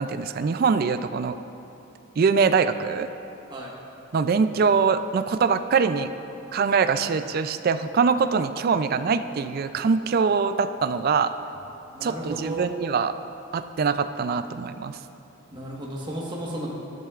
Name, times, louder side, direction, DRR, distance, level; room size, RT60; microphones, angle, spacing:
voice 1, 0.0-1.4 2.2-3.1 4.1-6.1 6.5-11.3 12.0-13.1 13.5-15.0, right 5 dB, 45° right, 11 dB, 0.3 m, -23 dB
voice 2, 11.9-12.7 15.5-16.7, right 1 dB, 20° right, -3 dB, 1.3 m, -33 dB
13.0 x 10.5 x 2.4 m, 2.8 s
head